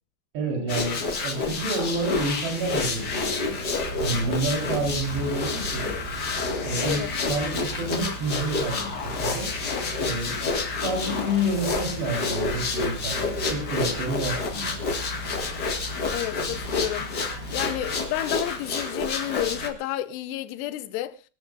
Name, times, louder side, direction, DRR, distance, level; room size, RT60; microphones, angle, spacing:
voice 1, 0.3-3.6 4.0-5.9 6.6-7.0 7.3-9.5 10.0-10.4 10.8-14.7, right 1 dB, 80° right, 6.0 m, -29 dB
sound 1, 0.7-19.7, left 3 dB, 45° left, 1.4 m, -29 dB
Thunder / Rain, 2.8-8.4, right 2 dB, 65° right, 7.9 m, -39 dB
sound 2, 3.8-18.0, left 1 dB, 30° right, 1.7 m, -40 dB
voice 2, 16.1-17.1 17.5-21.2, left 14 dB, 85° left, 2.9 m, -31 dB
22.5 x 13.5 x 2.5 m
omnidirectional pair, 4.8 m